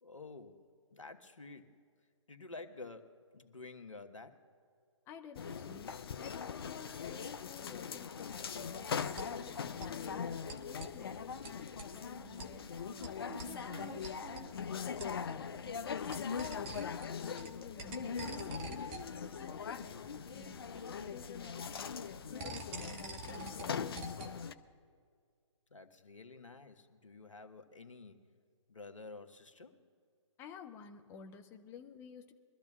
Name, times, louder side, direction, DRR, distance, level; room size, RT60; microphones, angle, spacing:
voice 1, 0.0-1.8 2.3-4.5 15.4-16.3 25.7-28.2 28.7-29.8, left 3 dB, 80° left, 7 dB, 1.4 m, -51 dB
voice 2, 5.1-5.9 6.2-8.9 9.2-14.0 17.2-18.9 19.4-20.0 20.3-24.0 30.4-32.3, left 6 dB, 15° left, 4 dB, 0.9 m, -53 dB
sound 1, 5.4-24.5, left 6 dB, 50° left, 0.7 m, -41 dB
sound 2, 8.3-24.5, right 3 dB, 25° right, 1.1 m, -49 dB
24.0 x 13.0 x 2.5 m, 2.1 s
figure-of-eight pair, 140°, 16 cm